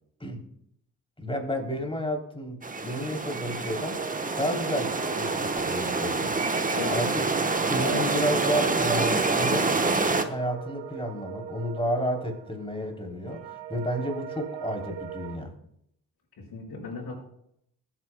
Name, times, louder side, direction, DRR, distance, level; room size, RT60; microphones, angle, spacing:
voice 1, 1.2-4.0 4.4-6.4 6.9-7.1 7.7-9.7 10.2-15.5, equal, 15° left, 3 dB, 3.2 m, -31 dB
sound 1, 2.6-10.2, right 3 dB, 20° right, 1.0 m, -27 dB
sound 2, 3.8-15.4, right 9 dB, 90° right, 0.8 m, -38 dB
voice 2, 6.7-7.1 16.4-17.2, left 5 dB, 65° left, -3 dB, 4.9 m, -37 dB
22.5 x 8.8 x 2.2 m, 0.75 s
hypercardioid pair, 45°, 40 cm